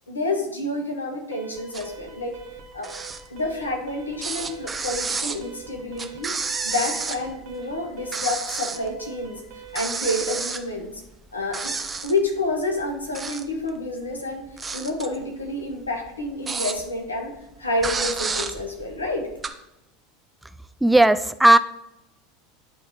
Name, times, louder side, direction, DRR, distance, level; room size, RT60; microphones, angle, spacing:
voice 1, 0.1-2.3 2.7-2.9 3.3-6.3 6.6-9.4 9.7-11.0 11.3-11.8 12.0-14.5 14.7-19.3, left 2 dB, 85° left, 2 dB, 1.4 m, -29 dB
Alarm, 1.3-10.5, right 7 dB, 55° right, 1.1 m, -44 dB
sound 1, 1.7-2.1 2.4-3.9 4.2-7.5 7.9-8.9 9.2-9.3 9.7-11.2 11.5-12.3 12.9-13.7 14.1-17.1 17.4-17.5 17.8-19.5, right 4 dB, 20° right, 0.8 m, -31 dB
voice 2, 20.8-21.6, right 1 dB, 5° right, 12 dB, 0.4 m, -15 dB
11.0 x 3.7 x 3.8 m, 0.86 s
figure-of-eight pair, 80°, 0 cm